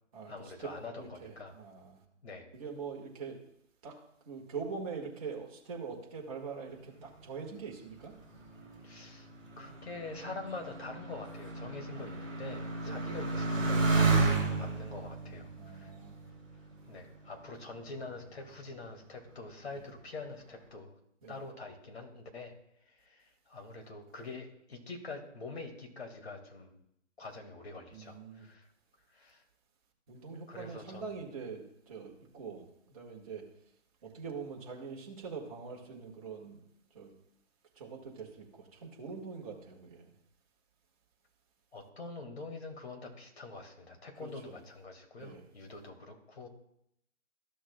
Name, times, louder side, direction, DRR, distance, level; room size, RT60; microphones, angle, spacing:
voice 1, 0.3-1.6 2.2-2.5 8.8-9.3 9.6-14.2 14.6-15.9 16.9-21.0 21.3-22.5 22.9-26.7 27.2-28.7 29.1-29.4 30.5-31.1 41.7-46.5, left 3 dB, 55° left, 2 dB, 2.1 m, -45 dB
voice 2, 1.0-2.0 2.5-3.4 3.8-4.0 4.3-8.1 11.9-12.2 12.8-13.1 15.6-16.2 19.7-19.9 21.2-21.4 27.9-28.5 30.1-33.4 34.0-36.6 36.9-37.1 37.8-40.1 44.2-44.5 45.2-45.5, right 5 dB, 25° right, -1 dB, 1.7 m, -43 dB
Motorcycle, 8.1-17.1 17.8-18.4, right 3 dB, 5° right, 0.6 m, -32 dB
13.5 x 6.3 x 2.3 m, 0.76 s
figure-of-eight pair, 150°, 38 cm